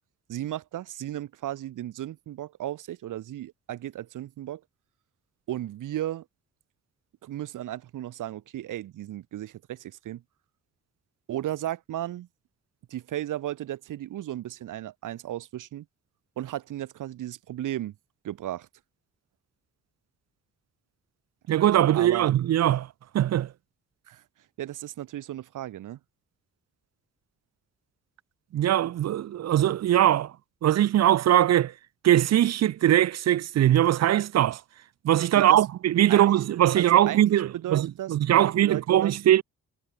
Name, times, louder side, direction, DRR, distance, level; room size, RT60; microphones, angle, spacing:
voice 1, 0.3-4.6 5.5-6.2 7.2-10.2 11.3-12.3 12.9-15.8 16.4-17.9 18.2-18.7 21.9-22.3 24.1-24.2 24.6-26.0 35.3-35.6 36.1-36.4 36.8-39.2, right 13 dB, 90° right, 1.0 m, -35 dB
voice 2, 21.5-22.9 23.1-23.5 28.5-30.3 30.6-31.7 32.0-34.6 35.0-39.4, right 12 dB, 60° right, 0.5 m, -21 dB
cardioid pair, 120°, 30 cm